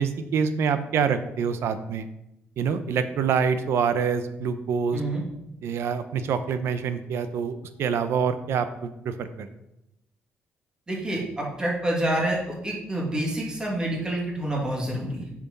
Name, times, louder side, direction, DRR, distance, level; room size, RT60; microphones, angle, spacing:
voice 1, 0.0-2.1 2.6-5.0 5.6-9.5, right 6 dB, 75° right, 11 dB, 0.7 m, -26 dB
voice 2, 4.9-5.2 10.9-15.3, right 1 dB, 20° right, -3 dB, 2.5 m, -28 dB
6.9 x 6.1 x 5.4 m, 0.88 s
cardioid pair, 95°, 4 cm